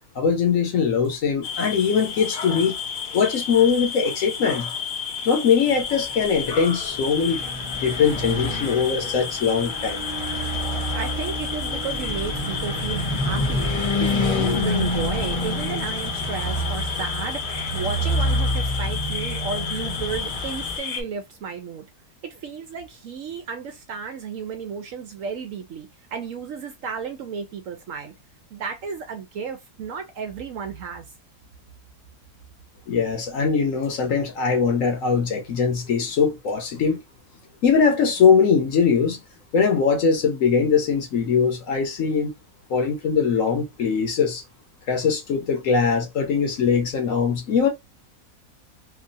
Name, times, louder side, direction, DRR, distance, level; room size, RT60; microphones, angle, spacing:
voice 1, 0.2-2.7 3.1-4.7 5.3-7.4 7.8-10.0 32.9-37.0 37.6-39.2 39.5-42.3 42.7-44.4 44.9-47.7, left 6 dB, 65° left, 1.0 m, -21 dB
sound 1, 1.4-21.0, left 6 dB, 80° left, 1.3 m, -32 dB
sound 2, 5.1-5.2 6.7-13.6, right 3 dB, 40° right, 1.1 m, -41 dB
Car passing by / Truck, 6.4-20.8, left 1 dB, 20° left, 0.8 m, -27 dB
voice 2, 10.9-21.8 22.2-28.1 28.5-31.0, right 6 dB, 70° right, 0.8 m, -33 dB
3.0 x 2.3 x 2.6 m
omnidirectional pair, 1.7 m